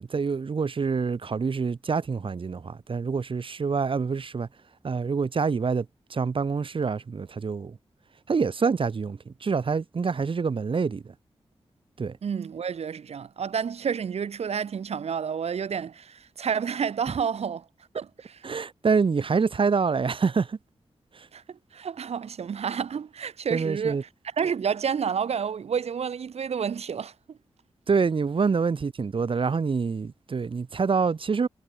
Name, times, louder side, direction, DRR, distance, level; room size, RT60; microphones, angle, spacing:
voice 1, 0.0-4.5 4.8-5.8 6.1-7.7 8.3-11.0 12.0-12.1 18.4-20.6 21.2-21.3 23.5-24.0 27.9-31.5, right 5 dB, 55° right, 3.1 m, -26 dB
voice 2, 12.2-17.6 17.9-18.4 21.3-21.4 21.7-24.0 24.4-27.1, right 7 dB, 85° right, 3.8 m, -30 dB
wide cardioid pair, 90°, 10 cm